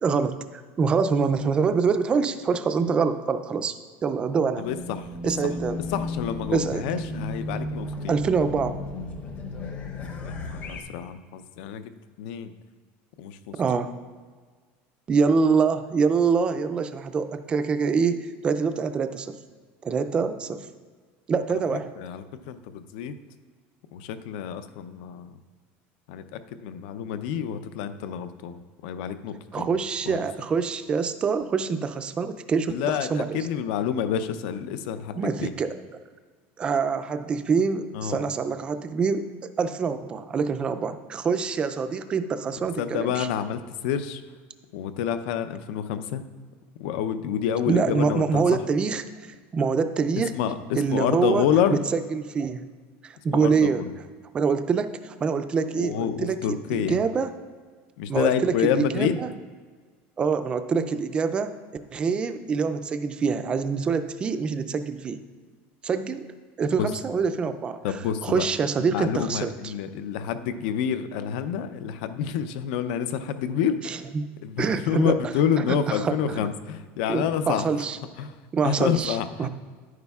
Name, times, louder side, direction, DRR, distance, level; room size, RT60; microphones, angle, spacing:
voice 1, 0.0-3.7 4.0-4.7 5.2-5.8 6.5-6.9 8.1-8.8 13.6-13.9 15.1-19.4 19.8-20.7 21.3-21.9 29.5-33.5 35.2-35.8 36.6-43.3 47.7-49.0 49.5-50.3 50.7-52.7 53.0-53.8 54.3-57.3 58.1-59.3 60.2-61.6 61.9-65.2 65.8-66.3 66.6-67.8 68.2-69.7 73.8-74.3 74.6-75.2 75.6-76.5 77.1-78.0 78.5-79.5, right 5 dB, 20° right, 10 dB, 0.3 m, -25 dB
voice 2, 4.6-5.0 5.9-8.2 10.2-11.8 12.2-12.5 13.2-13.8 21.5-21.6 22.0-23.1 23.9-25.3 26.1-29.7 30.1-30.2 32.7-35.5 37.9-38.2 42.8-44.2 44.7-46.2 46.8-48.6 50.3-51.8 53.3-53.9 55.7-57.0 58.0-59.2 66.8-66.9 67.8-68.5 68.8-74.0 74.4-77.9 78.2-78.3 78.6-79.5, left 8 dB, 65° left, 11 dB, 0.5 m, -28 dB
Race car auto racing / Alarm, 4.6-10.8, left 2 dB, 30° left, 0.8 m, -34 dB
11.0 x 9.4 x 2.3 m, 1.5 s
cardioid pair, 175°, 6 cm